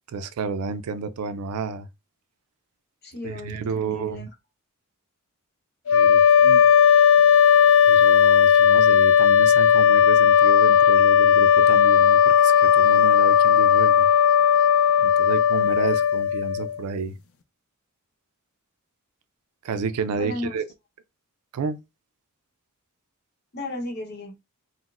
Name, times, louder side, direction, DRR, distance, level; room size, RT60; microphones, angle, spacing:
voice 1, 0.1-1.9 3.2-4.3 5.9-6.7 7.8-14.1 15.0-17.1 19.6-20.6 21.5-21.8, right 5 dB, 85° right, 0.4 m, -31 dB
voice 2, 3.0-4.3 20.2-20.6 23.5-24.4, left 1 dB, 45° left, 0.8 m, -34 dB
sound 1, 5.9-16.8, left 8 dB, 65° left, 0.4 m, -16 dB
3.9 x 2.0 x 2.4 m
head